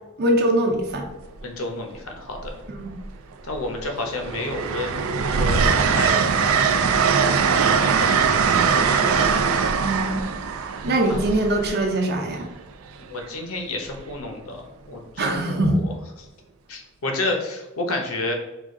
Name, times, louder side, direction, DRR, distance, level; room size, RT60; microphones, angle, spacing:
voice 1, 0.2-1.1 2.7-2.9 9.8-10.3 10.8-12.5 15.2-15.8, right 1 dB, 50° right, 1 dB, 0.8 m, -22 dB
Train, 0.8-1.1 2.4-3.1 3.5-12.3 13.9-14.1, right 6 dB, 75° right, 0.4 m, -21 dB
voice 2, 1.4-2.6 3.4-5.0 5.3-6.5 7.7-9.1 11.1-11.3 13.0-14.6 14.9-15.6 16.7-18.3, left 2 dB, 80° left, 3 dB, 0.9 m, -30 dB
4.9 x 2.4 x 3.7 m, 1.0 s
head